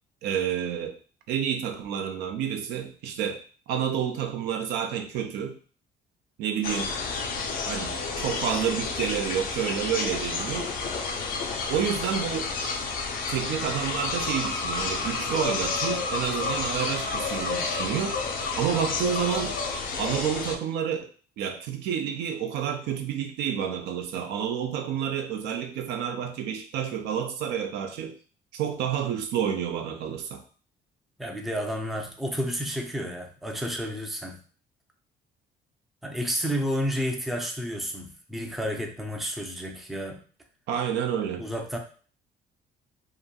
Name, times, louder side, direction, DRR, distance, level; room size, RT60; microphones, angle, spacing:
voice 1, 0.2-0.9 1.3-3.4 3.7-5.6 6.4-6.9 7.6-10.7 11.7-12.5 13.3-18.2 18.6-19.6 20.0-21.1 21.4-28.1 28.5-30.4 40.7-41.4, right 8 dB, 80° right, 6 dB, 0.5 m, -29 dB
sound 1, 6.6-20.6, left 4 dB, 55° left, 0.5 m, -30 dB
voice 2, 31.2-34.4 36.0-40.2 41.4-41.8, equal, ahead, 2 dB, 0.4 m, -31 dB
2.9 x 2.5 x 2.2 m, 0.41 s
cardioid pair, 110°, 17 cm